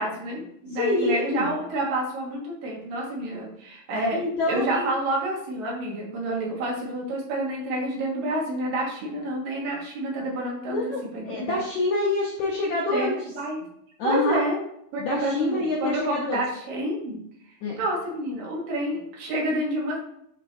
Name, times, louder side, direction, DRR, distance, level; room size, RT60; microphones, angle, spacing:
voice 1, 0.0-10.8 11.1-11.6 12.9-13.7 14.0-14.6 14.9-17.2 17.8-20.0, right 1 dB, 65° right, -2 dB, 3.0 m, -29 dB
voice 2, 0.7-1.5 3.9-4.9 10.7-13.1 14.0-14.4 15.0-16.4 17.6-17.8, left 2 dB, 75° left, -2 dB, 1.7 m, -26 dB
11.5 x 4.9 x 2.6 m, 0.72 s
omnidirectional pair, 4.6 m